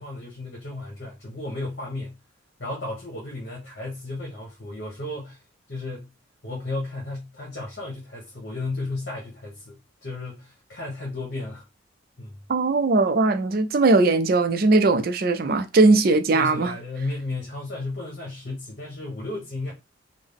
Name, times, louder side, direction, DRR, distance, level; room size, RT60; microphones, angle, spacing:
voice 1, 0.0-2.2 2.6-5.4 5.7-6.1 6.4-11.6 12.2-12.3 16.3-19.7, left 2 dB, 55° left, 1.2 m, -34 dB
voice 2, 12.5-16.7, right 3 dB, 45° right, 0.4 m, -19 dB
3.5 x 2.0 x 3.5 m
head